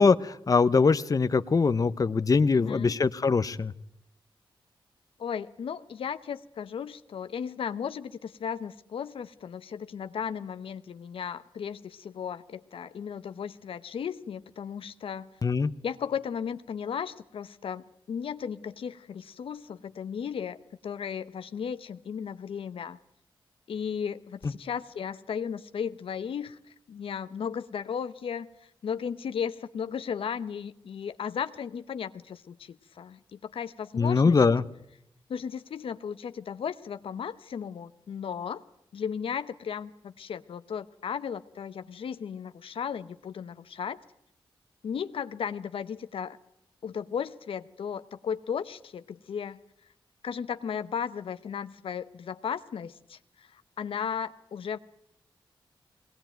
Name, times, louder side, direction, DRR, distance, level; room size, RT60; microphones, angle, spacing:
voice 1, 0.0-3.7 15.4-15.7 34.0-34.6, left 4 dB, 40° left, 0.8 m, -22 dB
voice 2, 2.5-3.0 5.2-15.3 15.8-20.6 20.8-23.0 23.7-26.6 26.9-28.5 28.8-34.4 35.3-38.6 38.9-44.0 44.8-46.4 46.8-49.6 50.2-54.8, left 7 dB, 90° left, 0.9 m, -35 dB
21.5 x 19.0 x 9.1 m
wide cardioid pair, 90°, 9 cm